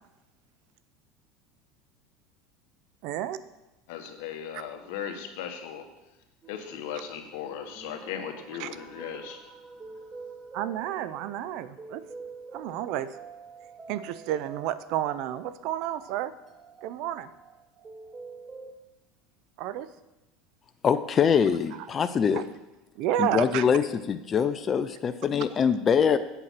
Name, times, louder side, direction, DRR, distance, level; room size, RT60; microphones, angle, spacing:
voice 1, 3.0-3.4 8.6-8.7 10.5-12.0 12.5-13.1 13.9-16.3 16.8-17.3 19.6-19.9 22.3-22.4 23.0-23.6, right 12 dB, 65° right, 15 dB, 0.6 m, -30 dB
voice 2, 3.9-5.8 6.5-9.4, left 8 dB, 75° left, 5 dB, 1.4 m, -37 dB
sound 1, 6.4-18.7, right 4 dB, 25° right, 1.0 m, -47 dB
voice 3, 20.8-22.5 23.2-26.2, left 7 dB, 35° left, 11 dB, 0.5 m, -24 dB
8.0 x 7.5 x 5.8 m, 0.99 s
supercardioid pair, 110°, 0 cm